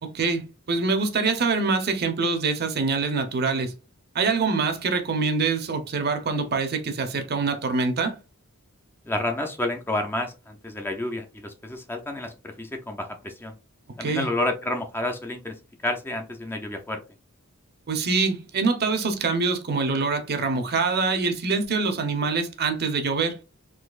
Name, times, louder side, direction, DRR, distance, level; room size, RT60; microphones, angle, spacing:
voice 1, 0.0-3.7 4.1-8.2 14.0-14.3 17.9-23.4, right 4 dB, 45° right, 0.7 m, -25 dB
voice 2, 9.1-13.5 14.0-15.6 15.8-17.0, left 1 dB, 10° left, 0.4 m, -30 dB
3.9 x 2.7 x 2.3 m
head